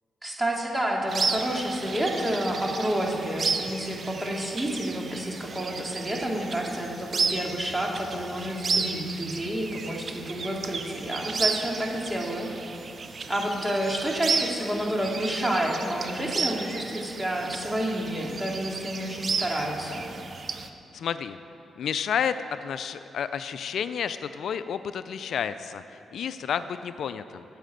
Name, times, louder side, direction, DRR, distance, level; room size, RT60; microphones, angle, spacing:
voice 1, 0.2-12.8 13.3-20.1, right 1 dB, 15° right, -1 dB, 2.3 m, -29 dB
sound 1, 1.1-20.7, right 4 dB, 50° right, 0.7 m, -33 dB
voice 2, 20.9-21.4 21.8-27.4, left 8 dB, 75° left, 12 dB, 0.3 m, -31 dB
9.1 x 7.4 x 9.1 m, 2.8 s
supercardioid pair, 60°, 0 cm